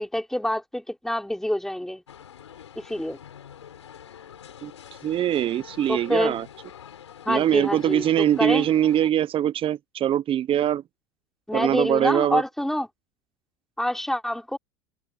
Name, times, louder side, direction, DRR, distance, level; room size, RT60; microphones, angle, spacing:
voice 1, 0.0-2.0 2.8-3.2 5.9-6.3 7.3-8.7 11.5-12.9 13.8-14.6, left 1 dB, ahead, 4.0 m, -26 dB
sound 1, 2.1-9.1, left 9 dB, 90° left, 5.3 m, -45 dB
voice 2, 5.0-6.5 7.3-10.8 11.5-12.4, right 11 dB, 40° right, 1.0 m, -22 dB
hypercardioid pair, 85°, 15 cm